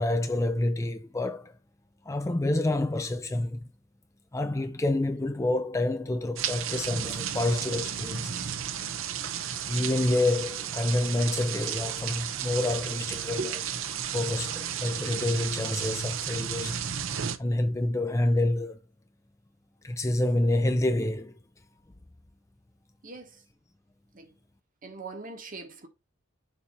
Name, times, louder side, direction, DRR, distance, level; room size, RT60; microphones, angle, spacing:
voice 1, 0.0-1.5 2.1-3.6 4.3-8.5 9.7-13.4 14.1-16.8 17.4-18.8 19.8-21.3, left 1 dB, 15° left, 0.4 m, -28 dB
sound 1, 6.4-17.4, right 9 dB, 75° right, 0.6 m, -33 dB
voice 2, 23.0-23.4 24.1-24.3 24.8-25.9, right 2 dB, 40° right, 1.2 m, -39 dB
7.0 x 2.8 x 5.4 m
head